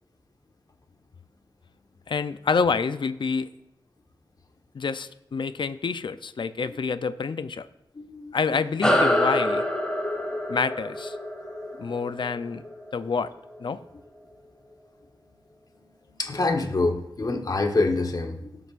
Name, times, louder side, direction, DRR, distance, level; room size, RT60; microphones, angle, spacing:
voice 1, 2.1-3.5 4.7-7.7 8.3-9.6 10.5-11.2 11.8-12.6 12.9-13.3 13.6-13.8, left 5 dB, 70° left, 12 dB, 0.5 m, -27 dB
voice 2, 7.9-8.3 16.1-18.6, left 3 dB, 50° left, 4 dB, 1.3 m, -26 dB
sound 1, 8.8-13.6, left 1 dB, 10° left, 1.7 m, -26 dB
18.0 x 7.8 x 2.5 m, 0.88 s
wide cardioid pair, 100°, 9 cm